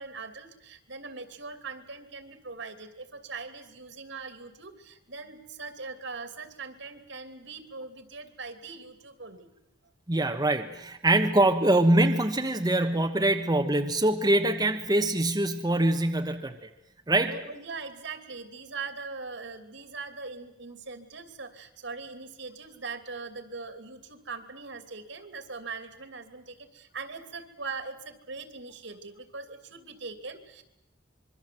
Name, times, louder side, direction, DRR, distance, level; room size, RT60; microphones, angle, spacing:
voice 1, 0.0-9.5 17.2-30.6, right 4 dB, 70° right, 9 dB, 2.8 m, -41 dB
voice 2, 10.1-16.7 17.1-17.4, right 1 dB, 20° right, 4 dB, 1.3 m, -24 dB
26.0 x 23.5 x 7.8 m, 0.86 s
head